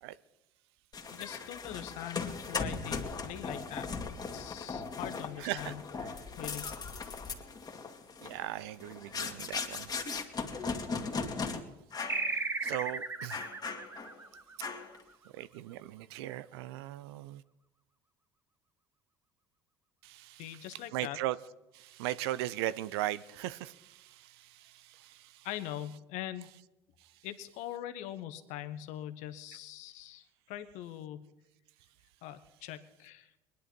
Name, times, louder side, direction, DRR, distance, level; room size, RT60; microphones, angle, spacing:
sound 1, 0.9-11.6 11.9-12.3 12.6-12.8 13.3-14.2 14.6-15.0, left 4 dB, 30° left, 2.1 m, -38 dB
voice 1, 1.1-3.9 4.3-5.8 6.4-6.8 20.4-21.2 25.4-26.5 27.2-31.3 32.2-33.3, left 12 dB, 70° left, 1.2 m, -42 dB
voice 2, 5.4-5.7 8.2-9.9 12.6-13.4 15.4-17.4 20.0-20.4 20.9-21.4 21.7-25.2, right 14 dB, 80° right, 0.6 m, -38 dB
sound 2, 12.1-15.1, right 3 dB, 20° right, 0.9 m, -36 dB
21.0 x 11.0 x 4.5 m
hypercardioid pair, 70°, 13 cm